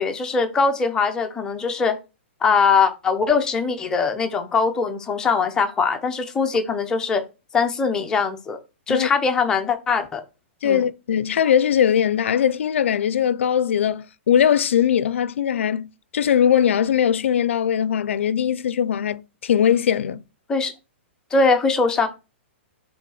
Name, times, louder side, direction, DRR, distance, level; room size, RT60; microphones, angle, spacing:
voice 1, 0.0-2.0 2.4-7.2 7.5-8.6 8.9-10.2 10.6-10.8 20.5-20.7 21.3-22.1, left 4 dB, 10° left, 0.6 m, -21 dB
voice 2, 10.6-20.2, left 9 dB, 80° left, 0.4 m, -20 dB
5.9 x 3.8 x 4.8 m
hypercardioid pair, 170°, 7 cm